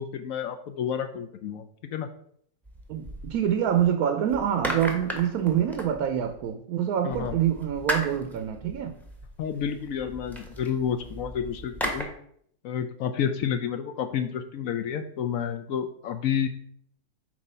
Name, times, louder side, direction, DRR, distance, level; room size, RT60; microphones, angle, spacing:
voice 1, 0.0-2.1 7.0-7.3 9.4-12.1 12.6-16.5, left 8 dB, 70° left, 0.9 m, -30 dB
sound 1, 2.6-3.8 4.3-6.5 7.1-12.0, right 1 dB, ahead, 0.7 m, -36 dB
voice 2, 2.9-9.0, right 9 dB, 70° right, 1.0 m, -26 dB
7.4 x 2.8 x 5.4 m
omnidirectional pair, 1.7 m